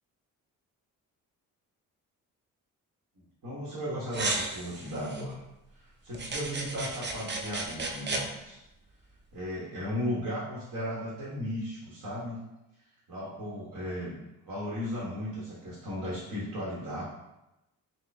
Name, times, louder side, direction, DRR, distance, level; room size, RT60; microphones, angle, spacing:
voice 1, 3.4-5.4 5.7-8.6 9.3-12.4 13.1-14.2 14.4-17.0, equal, 60° right, -6 dB, 1.3 m, -36 dB
sound 1, 4.1-5.2 6.1-8.2, right 2 dB, 30° right, 0.6 m, -34 dB
3.8 x 2.3 x 3.4 m, 0.93 s
supercardioid pair, 65°, 36 cm